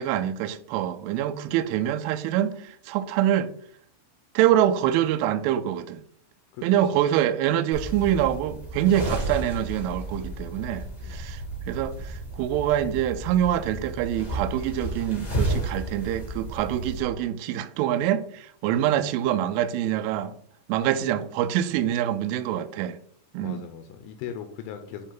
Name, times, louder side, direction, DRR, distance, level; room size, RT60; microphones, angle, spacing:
voice 1, 0.0-3.5 4.3-6.0 6.6-20.3 20.7-23.0 23.3-23.6, right 11 dB, 85° right, 2.9 m, -25 dB
sound 1, 7.7-17.0, right 1 dB, 40° left, 0.5 m, -33 dB
voice 2, 23.4-25.1, left 8 dB, 85° left, 2.9 m, -39 dB
10.0 x 3.7 x 3.8 m
omnidirectional pair, 5.9 m